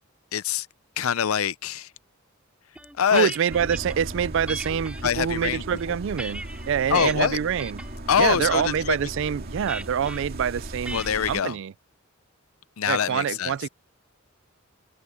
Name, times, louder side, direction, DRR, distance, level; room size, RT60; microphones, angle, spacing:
voice 1, 0.3-0.7 1.0-1.9 3.0-3.3 5.0-6.0 6.9-7.4 8.1-9.0 10.9-11.6 12.8-13.5, left 7 dB, 90° left, 0.6 m, -24 dB
sound 1, 2.7-4.0 4.5-5.0 5.6-7.1 7.6-8.0 8.3-8.7 9.7-10.2 10.8-11.2, right 1 dB, 5° right, 4.1 m, -38 dB
voice 2, 3.1-7.8 8.2-11.0 11.3-11.7 12.9-13.7, right 8 dB, 60° right, 0.3 m, -26 dB
sound 2, 3.5-11.4, right 1 dB, 45° right, 2.5 m, -37 dB
head